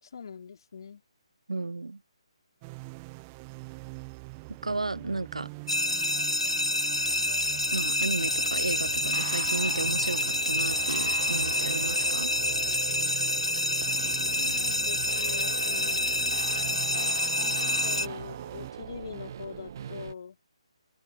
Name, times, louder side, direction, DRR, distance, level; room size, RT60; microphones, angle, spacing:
voice 1, 0.0-1.0 14.0-16.2 16.6-20.4, left 6 dB, 45° left, 4.0 m, -43 dB
voice 2, 1.5-2.0 4.6-5.5 7.7-12.3, right 3 dB, 70° right, 0.5 m, -33 dB
sound 1, 2.6-18.7, right 30 dB, 20° right, 0.7 m, -44 dB
sound 2, 5.7-18.1, left 1 dB, 85° left, 0.9 m, -28 dB
sound 3, 8.2-20.1, right 8 dB, 35° right, 1.2 m, -41 dB
open air
figure-of-eight pair, 145°, 3 cm